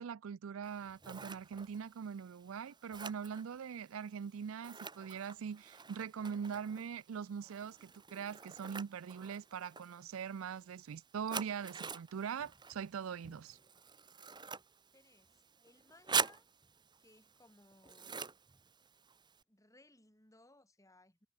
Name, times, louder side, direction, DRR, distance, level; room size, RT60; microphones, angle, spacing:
voice 1, 0.0-13.6, right 7 dB, 85° right, 0.4 m, -42 dB
Scissors, 0.6-19.4, right 5 dB, 20° right, 1.8 m, -45 dB
voice 2, 14.9-16.5 17.0-18.3 19.5-21.3, left 1 dB, 15° left, 6.5 m, -64 dB
head